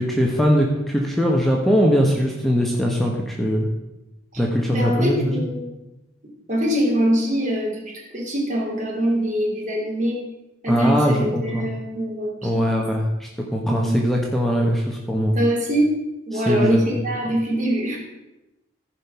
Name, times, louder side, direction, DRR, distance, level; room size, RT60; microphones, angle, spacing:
voice 1, 0.0-3.7 4.4-5.4 10.7-11.6 12.4-15.3 16.3-16.8, equal, ahead, -1 dB, 1.1 m, -21 dB
voice 2, 4.3-5.8 6.5-10.2 10.6-12.8 13.7-14.0 15.3-15.9 16.3-18.0, equal, 40° right, -2 dB, 3.1 m, -23 dB
14.5 x 5.2 x 5.8 m, 0.97 s
head